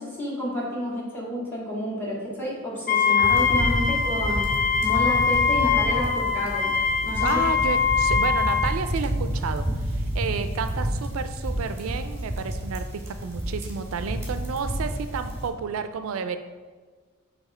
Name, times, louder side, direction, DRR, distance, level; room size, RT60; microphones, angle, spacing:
voice 1, 0.0-4.5 4.8-6.7 7.0-7.4, equal, 10° left, -5 dB, 2.2 m, -30 dB
Wind instrument woodwind instrument, 2.9-8.8, left 6 dB, 40° left, 0.5 m, -23 dB
sound 1, 3.2-15.5, equal, 10° right, 1.6 m, -30 dB
voice 2, 7.2-16.4, right 6 dB, 70° right, 9 dB, 0.4 m, -31 dB
7.0 x 3.5 x 5.5 m, 1.5 s
head